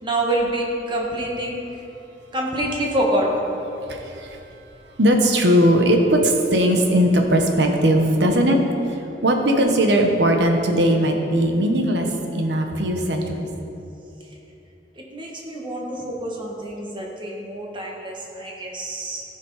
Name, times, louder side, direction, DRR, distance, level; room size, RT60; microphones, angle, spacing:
voice 1, 0.0-1.6 2.3-3.5 14.9-19.2, right 1 dB, 30° right, -2 dB, 1.6 m, -26 dB
voice 2, 3.8-4.4 5.0-8.6 8.9-9.0 9.2-12.1 12.3-13.5, equal, 75° right, 3 dB, 1.2 m, -19 dB
15.0 x 5.8 x 4.9 m, 2.9 s
head